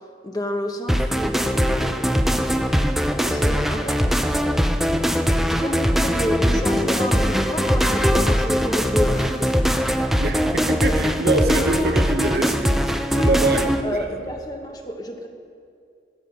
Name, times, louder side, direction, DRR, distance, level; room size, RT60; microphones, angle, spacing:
voice 1, 0.2-2.2 3.1-4.2 5.5-9.5 13.1-13.4 13.8-15.3, equal, 20° left, 3 dB, 1.2 m, -29 dB
sound 1, 0.9-13.8, equal, ahead, 0.5 m, -21 dB
voice 2, 10.2-13.7 14.1-14.3, right 3 dB, 55° right, 5 dB, 1.0 m, -25 dB
15.5 x 13.0 x 5.5 m, 2.4 s
head